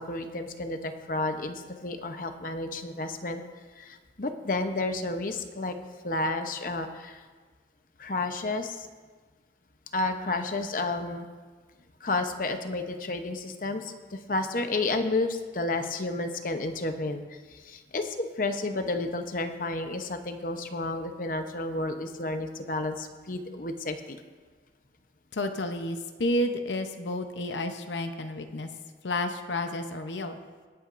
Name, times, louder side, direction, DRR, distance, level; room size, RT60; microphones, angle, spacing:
voice 1, 0.0-3.4 3.8-5.7 6.0-7.2 8.0-8.9 9.9-11.3 12.0-24.2, left 2 dB, 45° left, 7 dB, 0.8 m, -31 dB
voice 2, 25.3-28.7 29.0-30.4, left 1 dB, 80° left, 6 dB, 0.8 m, -31 dB
23.5 x 8.5 x 2.6 m, 1.5 s
head